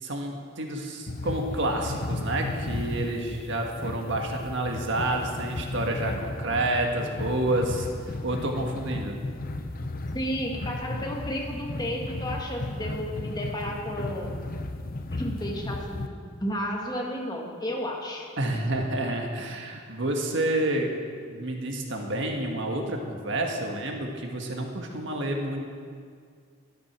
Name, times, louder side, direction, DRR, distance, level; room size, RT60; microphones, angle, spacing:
voice 1, 0.0-9.2 18.4-20.9 21.3-25.6, right 1 dB, 65° right, 2 dB, 1.6 m, -29 dB
sound 1, 1.1-16.1, left 2 dB, 50° left, 0.8 m, -34 dB
voice 2, 10.1-14.4 15.1-18.3, equal, 20° left, -1 dB, 1.9 m, -32 dB
12.5 x 11.0 x 6.0 m, 2.1 s
head